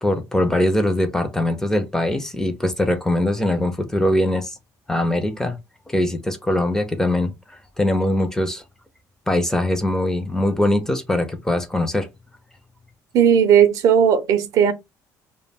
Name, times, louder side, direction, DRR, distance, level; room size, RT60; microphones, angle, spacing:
voice 1, 0.0-4.6 4.9-5.6 5.9-8.6 9.3-12.1, left 1 dB, 5° left, 0.4 m, -22 dB
voice 2, 13.1-14.7, right 8 dB, 55° right, 0.4 m, -16 dB
2.2 x 2.1 x 3.3 m
cardioid pair, 160°, 7 cm